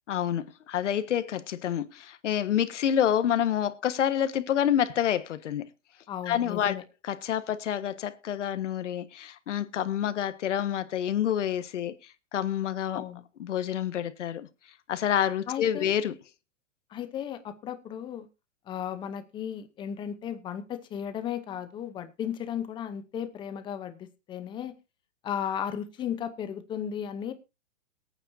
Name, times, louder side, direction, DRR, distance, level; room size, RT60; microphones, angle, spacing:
voice 1, 0.1-5.7 6.3-6.7 7.0-11.9 12.3-13.0 13.4-14.5 14.9-16.1, left 10 dB, 75° left, 1.4 m, -28 dB
voice 2, 6.1-6.8 12.9-13.2 15.5-15.9 16.9-18.3 18.7-24.8 25.2-27.3, left 9 dB, 15° left, 0.8 m, -35 dB
22.5 x 8.9 x 2.7 m
hypercardioid pair, 160°, 36 cm